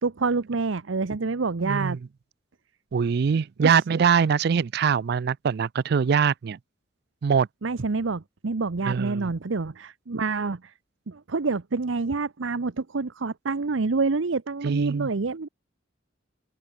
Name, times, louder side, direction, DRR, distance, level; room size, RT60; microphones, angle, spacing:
voice 1, 0.0-2.0 3.6-3.8 7.6-10.7 11.1-15.5, right 4 dB, 90° right, 0.8 m, -27 dB
voice 2, 1.6-2.0 2.9-6.6 7.2-7.5 8.9-9.3 14.6-15.1, right 6 dB, 55° right, 0.4 m, -23 dB
open air
head